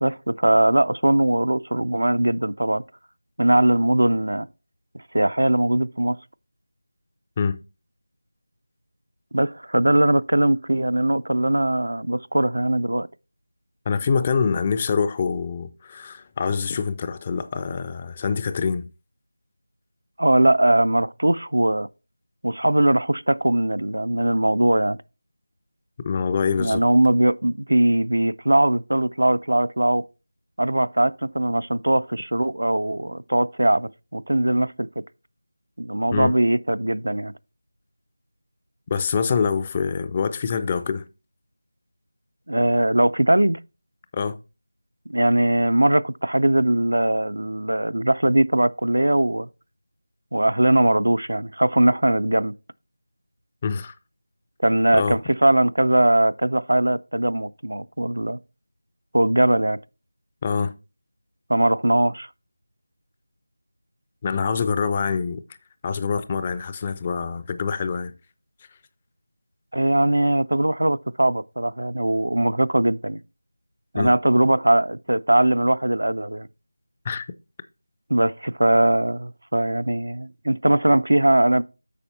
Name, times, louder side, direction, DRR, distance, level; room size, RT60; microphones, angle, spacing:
voice 1, 0.0-2.8 3.4-4.5 5.1-6.2 9.3-13.1 20.2-21.9 22.4-25.0 26.6-30.0 30.6-34.9 35.8-37.3 42.5-43.6 45.1-49.5 50.3-52.5 54.6-58.4 59.1-59.8 61.5-62.3 69.7-73.2 73.9-76.5 78.1-81.6, right 1 dB, 70° right, 0.4 m, -20 dB
voice 2, 13.9-18.9 26.0-26.8 36.1-36.3 38.9-41.0 44.1-44.4 53.6-53.9 54.9-55.2 60.4-60.7 64.2-65.4 65.8-68.1 74.0-74.1 77.0-77.3, left 5 dB, 20° left, 0.4 m, -25 dB
8.4 x 5.3 x 4.0 m
figure-of-eight pair, 165°, 0 cm